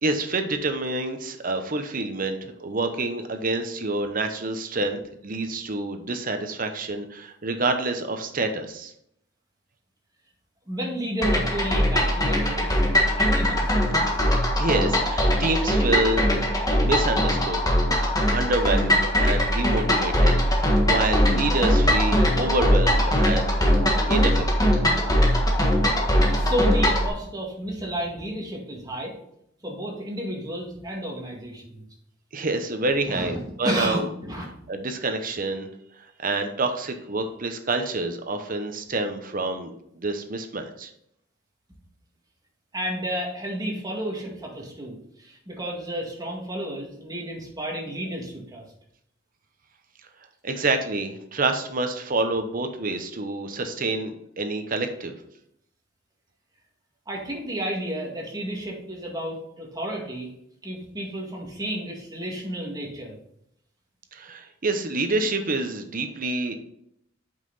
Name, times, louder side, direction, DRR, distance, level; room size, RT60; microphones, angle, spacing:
voice 1, 0.0-8.9 14.6-17.6 18.3-23.6 24.1-24.7 32.3-34.0 34.7-35.7 36.2-40.9 50.4-55.2 64.1-66.5, right 2 dB, 45° right, 7 dB, 0.9 m, -27 dB
voice 2, 10.7-14.1 26.2-29.2 29.6-31.8 33.1-33.4 33.6-34.5 42.7-48.6 57.1-60.3 60.6-63.2, equal, 20° right, -2 dB, 2.0 m, -32 dB
sound 1, 11.2-27.1, equal, 20° left, 1.5 m, -21 dB
8.0 x 5.6 x 4.1 m, 0.73 s
head